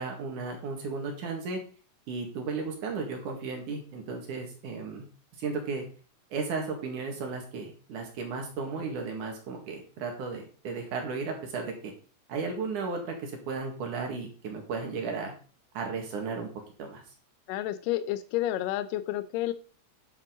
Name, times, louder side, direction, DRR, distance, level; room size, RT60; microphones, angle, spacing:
voice 1, 0.0-1.6 2.1-5.0 5.4-5.8 6.3-11.9 12.3-15.3 15.7-16.5 16.8-17.0, right 4 dB, 70° right, 3 dB, 3.3 m, -34 dB
voice 2, 17.5-19.5, left 14 dB, 85° left, 11 dB, 2.3 m, -30 dB
11.0 x 6.8 x 3.9 m, 0.39 s
omnidirectional pair, 3.8 m